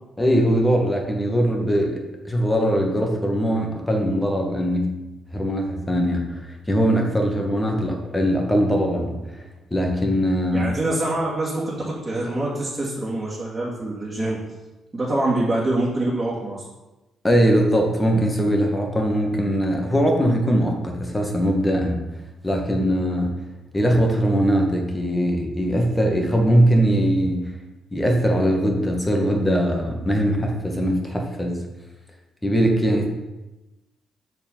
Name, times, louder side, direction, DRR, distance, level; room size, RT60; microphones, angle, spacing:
voice 1, 0.2-5.0 5.3-6.4 6.7-9.2 9.7-10.7 17.2-22.0 22.4-23.3 23.7-27.5 27.9-31.6 32.4-33.1, equal, 15° left, 1 dB, 1.9 m, -21 dB
voice 2, 10.5-14.4 14.9-16.6, right 2 dB, 25° right, -7 dB, 2.5 m, -25 dB
6.8 x 4.6 x 5.6 m, 1.0 s
hypercardioid pair, 45°, 0 cm